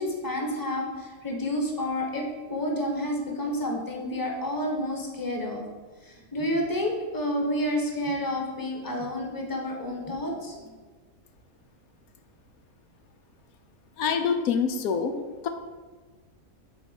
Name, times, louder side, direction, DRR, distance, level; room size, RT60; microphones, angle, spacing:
voice 1, 0.0-5.6 6.0-10.7, left 1 dB, 15° left, 1 dB, 1.2 m, -30 dB
voice 2, 14.0-15.2 15.4-15.5, left 6 dB, 85° left, 6 dB, 1.2 m, -25 dB
11.0 x 4.0 x 5.3 m, 1.4 s
omnidirectional pair, 1.5 m